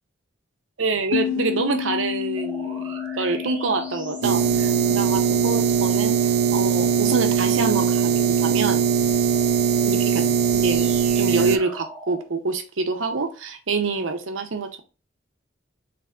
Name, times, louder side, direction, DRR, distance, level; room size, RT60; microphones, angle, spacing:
voice 1, 0.8-6.2 6.5-8.8 9.8-14.8, right 3 dB, 85° right, 6 dB, 0.8 m, -26 dB
sound 1, 1.1-6.4, left 11 dB, 75° left, 0.3 m, -31 dB
sound 2, 2.3-12.3, right 3 dB, 10° right, 1.0 m, -41 dB
sound 3, 4.2-11.6, right 7 dB, 55° right, 0.3 m, -20 dB
3.5 x 3.4 x 3.6 m, 0.32 s
head